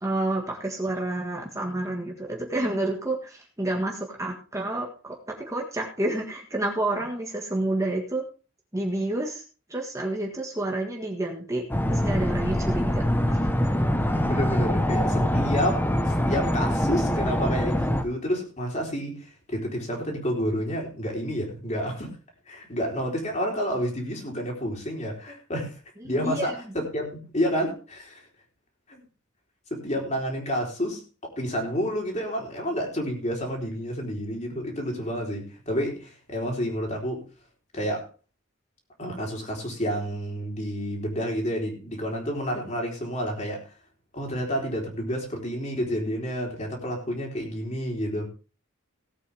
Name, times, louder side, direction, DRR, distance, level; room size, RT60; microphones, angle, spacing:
voice 1, 0.0-8.2 8.7-9.4 9.7-13.4 26.2-26.5, right 2 dB, 15° right, 1.7 m, -29 dB
sound 1, 11.7-18.0, equal, 10° left, 1.1 m, -24 dB
voice 2, 14.3-22.1 22.5-25.8 26.0-28.3 28.9-29.0 29.7-31.0 31.3-37.2 37.7-38.1 39.0-43.7 44.1-48.3, equal, 35° left, 3.9 m, -29 dB
18.0 x 8.4 x 3.5 m
head